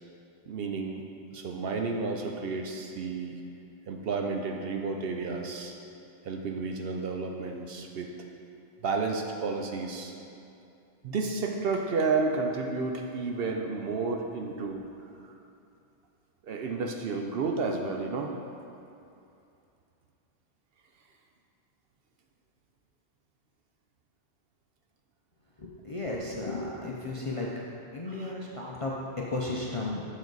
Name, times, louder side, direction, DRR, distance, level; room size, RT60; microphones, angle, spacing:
voice 1, 0.5-1.0 1.3-3.4 3.9-5.7 6.2-8.1 8.8-10.1 11.0-14.8 15.2-15.4 16.4-18.3 27.1-27.2 28.1-28.3, right 4 dB, 60° right, 2 dB, 0.7 m, -31 dB
voice 2, 25.6-27.5 27.9-30.0, left 2 dB, 40° left, -4 dB, 0.5 m, -34 dB
7.2 x 6.3 x 3.9 m, 2.6 s
omnidirectional pair, 1.2 m